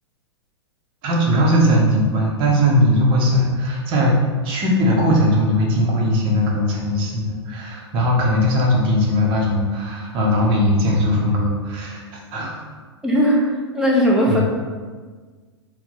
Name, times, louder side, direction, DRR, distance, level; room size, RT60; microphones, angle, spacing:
voice 1, 1.0-4.2 4.4-12.0 12.3-12.6 14.3-14.4, equal, 35° right, -2 dB, 1.1 m, -19 dB
voice 2, 13.0-13.5 13.7-14.4, equal, 5° right, -4 dB, 0.9 m, -17 dB
4.4 x 2.4 x 4.0 m, 1.4 s
figure-of-eight pair, 105°, 15 cm